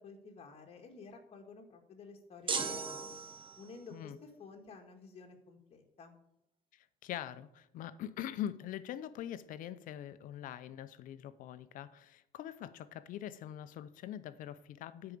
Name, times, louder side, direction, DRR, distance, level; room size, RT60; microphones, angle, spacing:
voice 1, 0.0-3.2 3.6-6.2, left 4 dB, 45° left, 1.9 m, -52 dB
sound 1, 2.5-3.8, right 5 dB, 35° right, 1.1 m, -37 dB
voice 2, 6.7-15.2, left 11 dB, 70° left, 0.6 m, -43 dB
8.9 x 4.8 x 6.9 m
cardioid pair, 110°, 14 cm